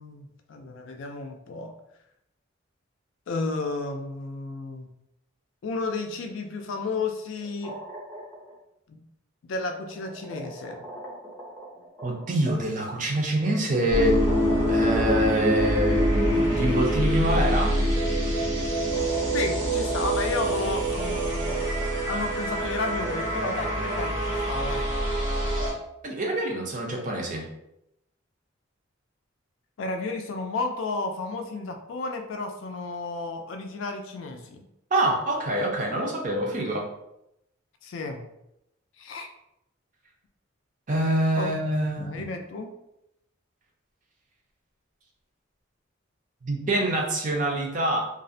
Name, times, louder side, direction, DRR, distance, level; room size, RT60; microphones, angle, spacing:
voice 1, 0.0-1.7 3.3-4.9 5.6-7.8 8.9-9.0 9.4-10.8 19.3-21.6 22.1-24.9 29.8-34.6 36.6-36.7 37.8-38.3 39.0-39.3 41.4-41.5 42.0-42.7, left 3 dB, 70° left, 4 dB, 0.4 m, -32 dB
sound 1, 7.4-8.5 9.7-12.5 14.1-16.9 17.3-17.4 18.4-18.5 18.9-21.9 22.7-24.4, equal, 10° left, 0.5 m, -39 dB
voice 2, 12.0-14.3 14.7-17.8 26.0-27.4 34.9-36.9 40.9-42.2 46.4-48.0, right 1 dB, 40° right, 0 dB, 0.4 m, -26 dB
sound 2, 13.9-25.7, right 1 dB, 85° right, 1.2 m, -25 dB
2.4 x 2.0 x 2.6 m, 0.83 s
head